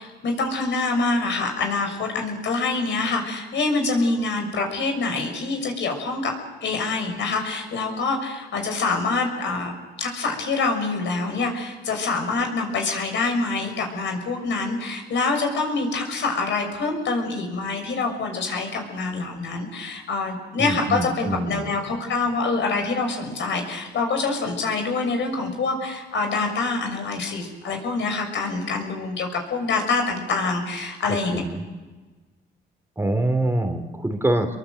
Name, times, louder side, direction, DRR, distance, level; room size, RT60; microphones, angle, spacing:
voice 1, 0.0-6.3 6.6-31.4, left 3 dB, 65° left, 3 dB, 6.4 m, -25 dB
voice 2, 20.6-21.7 31.3-31.6 33.0-34.6, right 1 dB, 10° right, 6 dB, 3.0 m, -25 dB
28.0 x 22.5 x 7.9 m, 1.3 s
cardioid pair, 90°, 20 cm